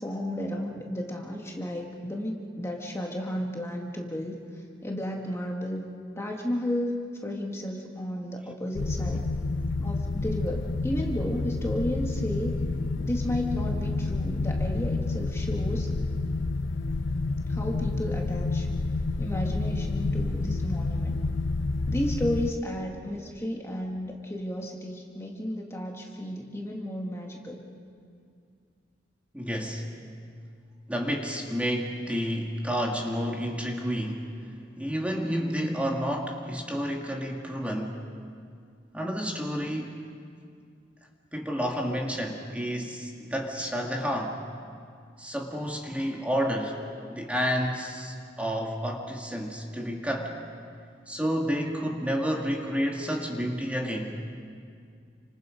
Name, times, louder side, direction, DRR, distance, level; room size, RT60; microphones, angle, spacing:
voice 1, 0.0-4.4 4.8-5.9 6.2-7.0 7.2-9.3 9.8-12.6 13.0-15.9 17.5-18.7 19.2-21.2 21.9-27.6, left 1 dB, 15° left, 0 dB, 1.9 m, -33 dB
sound 1, 8.7-22.5, left 3 dB, 90° left, 0.7 m, -29 dB
voice 2, 29.3-29.8 30.9-34.2 34.8-38.0 38.9-40.0 41.3-44.4 45.2-46.8 47.1-50.3 51.1-54.2, equal, 5° right, 0 dB, 2.0 m, -30 dB
29.5 x 26.0 x 5.1 m, 2.3 s
head